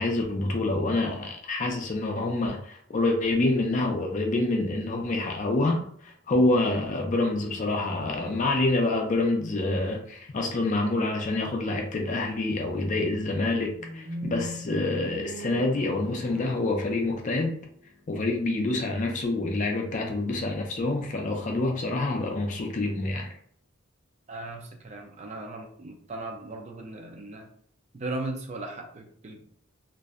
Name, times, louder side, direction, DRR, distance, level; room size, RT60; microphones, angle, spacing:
voice 1, 0.0-17.6 18.1-23.3, left 2 dB, 40° left, 0.4 m, -27 dB
sound 1, 13.8-17.9, equal, 75° right, 0.8 m, -40 dB
voice 2, 24.3-27.5 27.9-29.4, right 2 dB, 35° right, 0.4 m, -37 dB
2.5 x 2.1 x 2.3 m
head